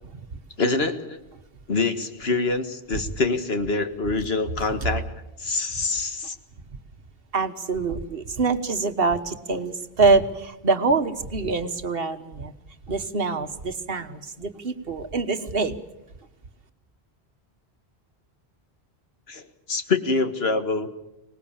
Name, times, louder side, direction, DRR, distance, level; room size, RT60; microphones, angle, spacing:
voice 1, 0.6-1.2 1.7-5.0 5.4-6.4 19.3-19.4 19.7-20.9, left 3 dB, 70° left, 8 dB, 1.9 m, -25 dB
voice 2, 7.3-12.5 12.9-15.8, right 4 dB, 65° right, 10 dB, 1.5 m, -25 dB
25.0 x 19.5 x 7.3 m, 0.91 s
omnidirectional pair, 1.1 m